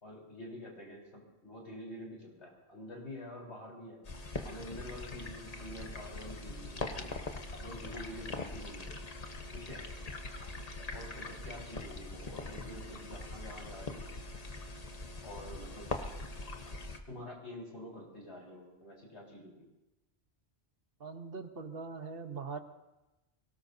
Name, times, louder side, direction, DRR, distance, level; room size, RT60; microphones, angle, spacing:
voice 1, 0.0-4.0 4.4-7.1 7.6-8.9 9.5-9.8 10.9-14.1 15.2-16.1 17.1-19.7, left 1 dB, 90° left, -2 dB, 4.3 m, -47 dB
sound 1, 4.1-17.0, left 2 dB, 40° left, 1.1 m, -42 dB
voice 2, 21.0-22.6, right 4 dB, 60° right, 7 dB, 1.2 m, -41 dB
23.0 x 18.0 x 2.7 m, 1.0 s
omnidirectional pair, 1.1 m